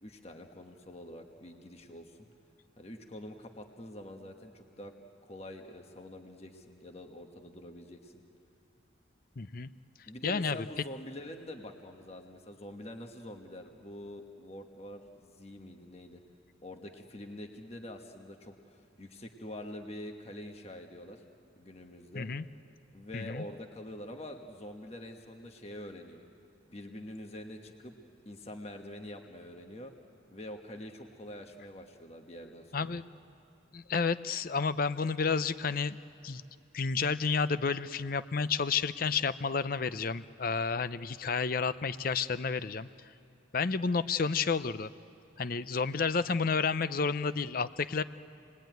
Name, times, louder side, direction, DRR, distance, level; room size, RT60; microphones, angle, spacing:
voice 1, 0.0-2.3 2.8-4.9 5.2-8.2 10.1-16.2 16.6-21.2 21.6-22.3 22.9-26.3 26.7-27.9 28.2-29.9 30.3-33.0, left 1 dB, 35° left, 4 dB, 1.4 m, -46 dB
voice 2, 9.4-9.7 10.2-10.7 22.1-22.4 23.1-23.4 32.7-33.0 33.7-36.0 36.2-36.4 36.7-42.9 43.5-44.9 45.4-48.0, left 5 dB, 50° left, 14 dB, 0.6 m, -31 dB
27.5 x 20.5 x 9.2 m, 2.8 s
head